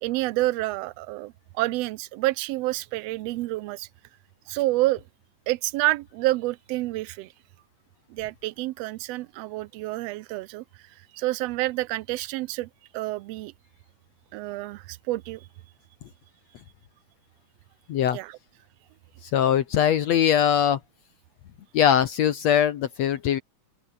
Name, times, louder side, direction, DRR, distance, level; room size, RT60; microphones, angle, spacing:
voice 1, 0.0-3.9 4.5-5.0 5.5-7.3 8.1-13.5 14.3-15.5 18.1-18.4, right 18 dB, 90° right, 1.4 m, -28 dB
voice 2, 19.2-20.8 21.7-23.4, left 9 dB, 65° left, 2.3 m, -21 dB
open air
omnidirectional pair, 3.5 m